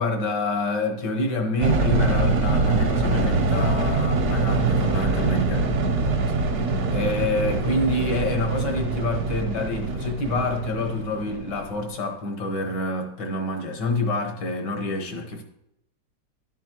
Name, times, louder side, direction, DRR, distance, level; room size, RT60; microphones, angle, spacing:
voice 1, 0.0-5.7 6.9-15.4, left 2 dB, 75° left, 3 dB, 1.7 m, -27 dB
sound 1, 1.6-11.8, right 3 dB, 55° right, 1.0 m, -24 dB
11.0 x 7.1 x 2.9 m, 0.84 s
omnidirectional pair, 1.9 m